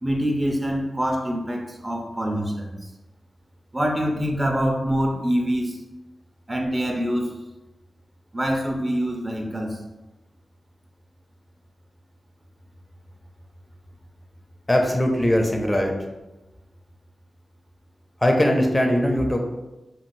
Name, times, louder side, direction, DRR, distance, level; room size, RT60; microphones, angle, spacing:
voice 1, 0.0-2.7 3.7-5.8 6.5-7.3 8.3-9.8, equal, 25° right, 1 dB, 0.6 m, -25 dB
voice 2, 14.7-15.9 18.2-19.4, equal, 20° left, 2 dB, 0.5 m, -20 dB
3.1 x 2.5 x 2.6 m, 1.0 s
cardioid pair, 45°, 0 cm